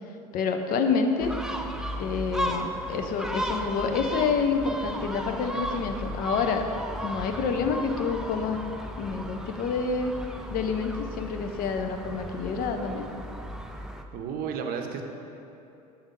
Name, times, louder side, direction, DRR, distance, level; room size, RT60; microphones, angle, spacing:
voice 1, 0.3-1.3 2.0-6.7 7.0-8.6 9.0-10.1 10.5-13.1, left 5 dB, 45° left, 5 dB, 0.7 m, -28 dB
Gull seagull, 1.2-14.0, equal, 5° right, 0.4 m, -35 dB
voice 2, 14.1-15.0, right 7 dB, 50° right, 4 dB, 0.7 m, -32 dB
7.0 x 3.6 x 5.2 m, 2.9 s
hypercardioid pair, 75°, 20 cm